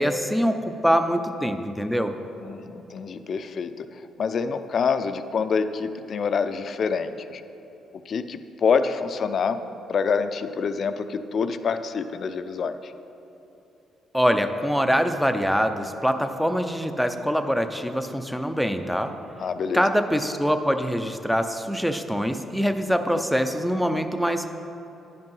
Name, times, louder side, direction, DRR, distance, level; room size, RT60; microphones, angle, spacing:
voice 1, 0.0-2.1 14.1-19.1 19.7-24.5, equal, ahead, 8 dB, 0.6 m, -24 dB
voice 2, 2.4-3.9 4.2-7.4 8.1-9.6 9.9-12.9 19.4-19.8, left 5 dB, 55° left, 10 dB, 0.5 m, -26 dB
10.0 x 5.3 x 5.5 m, 3.0 s
cardioid pair, 90°, 0 cm